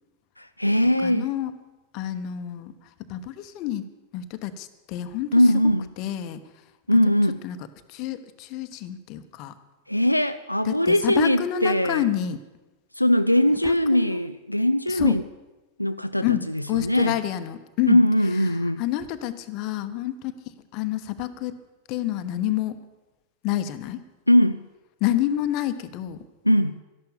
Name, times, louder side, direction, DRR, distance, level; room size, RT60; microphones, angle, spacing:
voice 1, 0.4-1.3 5.3-5.9 6.9-7.4 9.9-12.1 13.0-15.2 15.8-17.2 17.9-18.8 24.3-24.7 26.4-26.8, left 1 dB, 90° left, 10 dB, 0.4 m, -21 dB
voice 2, 1.0-1.5 1.9-2.7 3.0-3.8 4.1-5.3 6.0-6.4 6.9-7.0 7.4-7.6 7.9-9.5 10.6-12.4 13.6-14.3 14.9-15.2 16.2-18.0 18.8-21.6 21.9-22.8 23.4-24.0 25.0-26.2, left 12 dB, 40° left, 11 dB, 1.0 m, -28 dB
13.0 x 11.5 x 7.1 m, 1.1 s
figure-of-eight pair, 90°, 0 cm